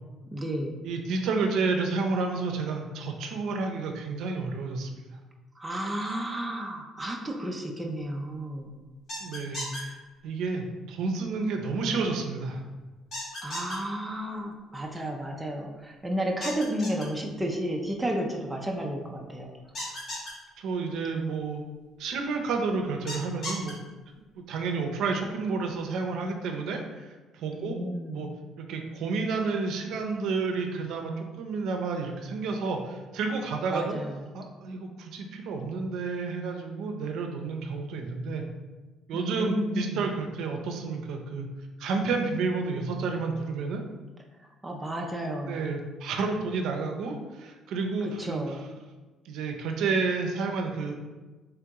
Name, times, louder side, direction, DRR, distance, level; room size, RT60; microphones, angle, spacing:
voice 1, 0.3-0.8 5.6-8.8 13.4-19.6 27.5-28.3 33.7-34.3 39.1-40.1 44.6-45.7 48.0-48.7, right 1 dB, 5° right, 0 dB, 0.4 m, -32 dB
voice 2, 0.8-4.9 9.2-10.0 10.2-12.6 19.9-20.0 20.6-21.6 22.0-23.8 24.4-27.1 27.3-27.8 28.1-28.3 28.6-34.0 34.3-38.5 39.1-41.5 41.8-43.8 45.5-48.6 49.2-51.0, right 4 dB, 65° right, 3 dB, 0.5 m, -30 dB
sound 1, 9.1-9.8 13.1-13.8 16.4-17.0 19.7-20.3 23.1-23.7, left 1 dB, 50° left, 1.4 m, -35 dB
3.5 x 2.9 x 3.5 m, 1.2 s
cardioid pair, 160°, 0 cm